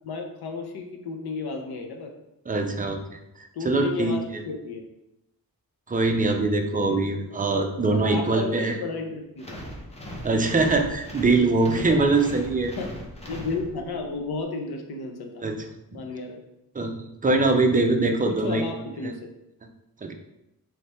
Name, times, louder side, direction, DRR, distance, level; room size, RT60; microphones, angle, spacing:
voice 1, 0.0-2.1 3.5-4.9 6.8-7.1 7.9-9.6 11.7-12.0 12.6-12.9 13.3-15.4 15.9-16.4 18.3-19.2, left 4 dB, 90° left, 4 dB, 0.7 m, -33 dB
voice 2, 2.5-4.4 5.9-8.8 10.2-12.7 15.4-15.5 16.7-16.9 17.2-18.6 20.0-20.1, right 3 dB, 25° right, 4 dB, 0.5 m, -23 dB
sound 1, 9.4-14.1, equal, 15° left, 0.7 m, -39 dB
3.3 x 3.2 x 4.2 m, 0.90 s
wide cardioid pair, 110°, 37 cm